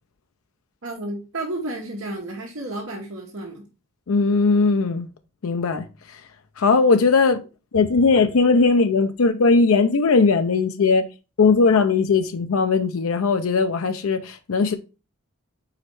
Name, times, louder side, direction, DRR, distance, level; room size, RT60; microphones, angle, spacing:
voice 1, 0.8-3.7, right 2 dB, 70° right, 1.3 m, -32 dB
voice 2, 4.1-5.1 5.4-6.2 6.6-7.4 7.7-11.0 11.4-14.8, left 4 dB, 80° left, 0.5 m, -19 dB
4.8 x 4.3 x 4.6 m
head